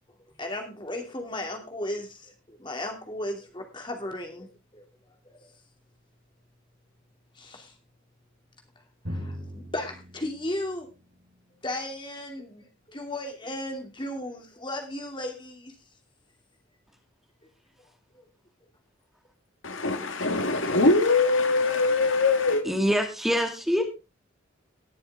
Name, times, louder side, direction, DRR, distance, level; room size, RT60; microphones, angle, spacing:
voice 1, 0.4-4.5 4.7-4.8 5.2-5.5 7.3-7.7 9.1-10.9 11.6-15.7, left 1 dB, 25° left, 2.7 m, -35 dB
Drum, 9.0-12.6, equal, 70° right, 4.3 m, -41 dB
voice 2, 19.6-22.6, left 3 dB, 85° left, 1.9 m, -22 dB
voice 3, 22.7-23.8, equal, ahead, 2.1 m, -25 dB
19.5 x 7.0 x 3.6 m
head